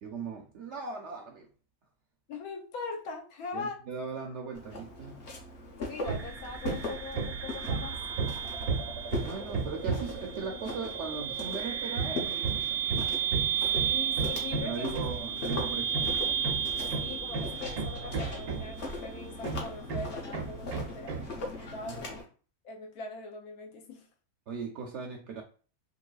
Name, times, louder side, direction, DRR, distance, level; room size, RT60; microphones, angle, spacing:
voice 1, 0.0-1.5 3.5-5.4 9.2-12.8 14.6-16.2 21.9-22.0 24.5-25.4, right 5 dB, 65° right, 0.7 m, -39 dB
voice 2, 2.3-3.8 5.7-8.0 13.7-15.0 17.0-21.3 21.6-22.3 22.6-24.1, left 3 dB, 80° left, 1.2 m, -41 dB
Walk footsteps, 4.5-22.2, left 2 dB, 55° left, 1.1 m, -41 dB
sound 1, 6.0-19.0, right 9 dB, 30° right, 0.5 m, -34 dB
Hammer, 6.0-6.3 6.6-10.2 11.9-18.9 19.4-21.4, right 4 dB, 85° right, 1.1 m, -34 dB
3.8 x 2.7 x 2.4 m
omnidirectional pair, 1.5 m